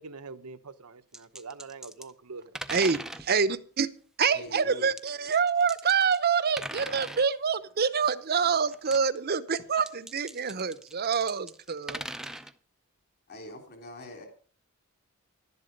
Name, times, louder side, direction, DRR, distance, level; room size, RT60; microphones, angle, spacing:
voice 1, 0.0-2.6, right 4 dB, 85° right, 0.9 m, -44 dB
sound 1, 1.1-2.1 2.6-3.3 5.0-6.3 6.6-7.3 8.7-9.2 9.7-12.5, right 1 dB, ahead, 0.5 m, -40 dB
voice 2, 2.7-3.9 4.2-12.0, right 6 dB, 45° right, 0.7 m, -26 dB
voice 3, 4.3-4.9 8.4-8.5 13.3-14.3, equal, 45° left, 3.5 m, -44 dB
11.5 x 11.0 x 5.3 m
head